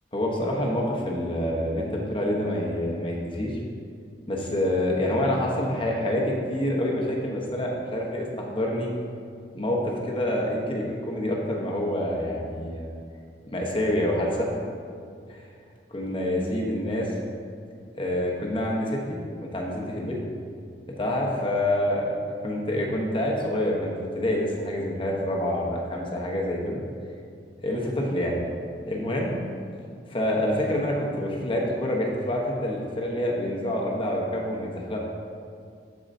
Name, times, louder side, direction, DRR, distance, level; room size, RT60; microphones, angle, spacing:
voice 1, 0.1-3.6 4.3-8.9 9.5-12.9 13.5-14.5 15.3-15.4 15.9-17.1 18.0-20.2 21.0-22.1 22.4-26.8 27.6-28.4 28.8-29.3 30.1-35.0, left 1 dB, 30° left, -2 dB, 1.0 m, -27 dB
14.0 x 4.8 x 2.7 m, 2.3 s
head